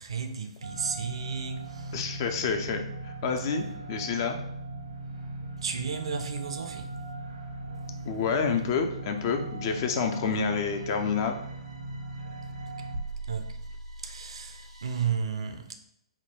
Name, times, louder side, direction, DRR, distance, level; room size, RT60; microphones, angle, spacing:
voice 1, 0.0-2.0 5.6-6.9 13.3-13.4 14.0-15.8, right 6 dB, 65° right, 0.5 m, -33 dB
sound 1, 0.6-15.0, right 2 dB, 80° right, 0.9 m, -39 dB
voice 2, 1.9-4.4 8.1-11.4, left 5 dB, 40° left, 0.4 m, -28 dB
3.6 x 2.2 x 4.3 m
figure-of-eight pair, 120°, 3 cm